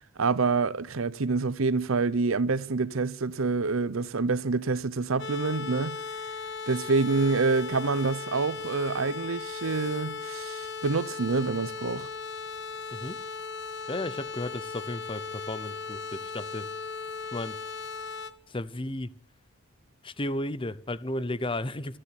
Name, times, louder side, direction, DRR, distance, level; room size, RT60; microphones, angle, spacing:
voice 1, 0.2-6.0 6.7-12.1, right 4 dB, 70° right, 0.8 m, -27 dB
sound 1, 5.2-18.3, left 5 dB, 60° left, 1.5 m, -37 dB
voice 2, 13.9-16.7 17.3-17.6 18.5-19.1 20.0-22.0, left 1 dB, 25° left, 0.8 m, -34 dB
26.5 x 10.0 x 10.0 m
head